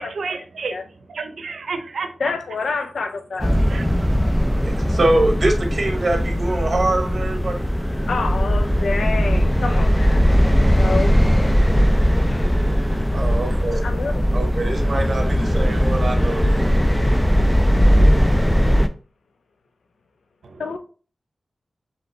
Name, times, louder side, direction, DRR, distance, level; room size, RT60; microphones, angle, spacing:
voice 1, 0.0-2.3 3.6-5.0 20.4-20.6, right 4 dB, 90° right, 0.6 m, -33 dB
voice 2, 2.2-3.6 8.1-10.2 10.8-11.2 12.1-12.5 13.8-14.2 20.6-20.8, left 4 dB, 85° left, 0.6 m, -27 dB
sound 1, 3.4-18.9, equal, 5° left, 0.4 m, -18 dB
voice 3, 4.6-7.6 13.1-13.8 14.3-16.8, right 2 dB, 50° right, 0.9 m, -24 dB
5.0 x 3.3 x 3.2 m
wide cardioid pair, 95°, 0 cm